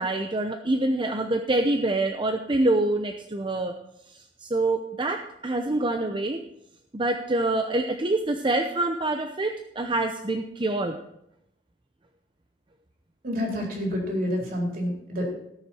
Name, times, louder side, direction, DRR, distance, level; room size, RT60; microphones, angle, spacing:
voice 1, 0.0-3.8 4.4-6.4 6.9-11.0, right 2 dB, 30° right, 4 dB, 0.7 m, -26 dB
voice 2, 13.2-15.5, equal, 55° right, -1 dB, 4.0 m, -28 dB
18.5 x 6.6 x 4.4 m, 0.79 s
head